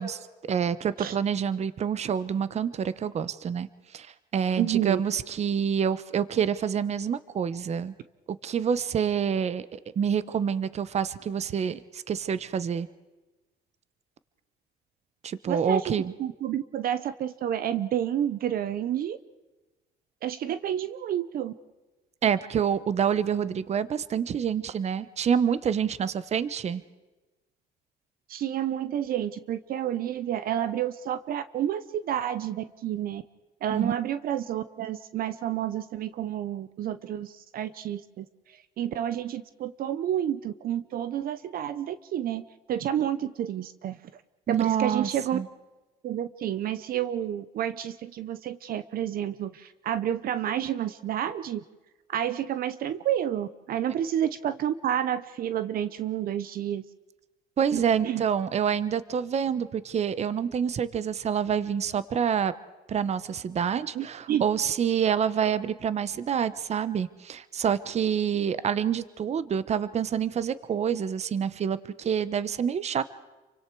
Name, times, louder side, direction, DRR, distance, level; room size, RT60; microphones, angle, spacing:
voice 1, 0.0-3.7 3.9-7.9 8.4-12.9 15.2-16.1 22.2-26.8 33.7-33.9 44.5-45.5 57.6-62.5 62.9-73.0, right 7 dB, 40° right, 15 dB, 1.0 m, -27 dB
voice 2, 4.6-5.0 15.5-15.8 16.2-19.2 20.2-21.5 28.3-33.2 33.6-38.3 38.8-42.4 42.7-44.0 44.5-45.4 46.0-51.6 52.1-56.8 57.7-58.2 63.9-64.4, right 10 dB, 60° right, 13 dB, 0.9 m, -30 dB
28.5 x 24.5 x 4.7 m, 1.1 s
cardioid pair, 110°, 17 cm